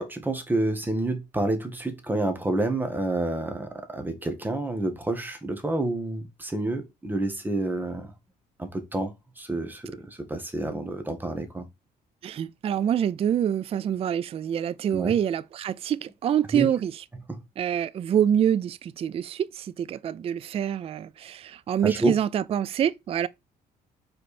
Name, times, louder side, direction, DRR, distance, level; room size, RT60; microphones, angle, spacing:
voice 1, 0.0-8.1 8.6-11.7 14.9-15.1 16.5-16.7 17.3-17.4 21.8-22.1, right 2 dB, 10° right, 1.5 m, -29 dB
voice 2, 12.2-16.9 17.6-23.3, right 9 dB, 35° right, 0.4 m, -26 dB
5.1 x 4.4 x 4.2 m
cardioid pair, 110°, 17 cm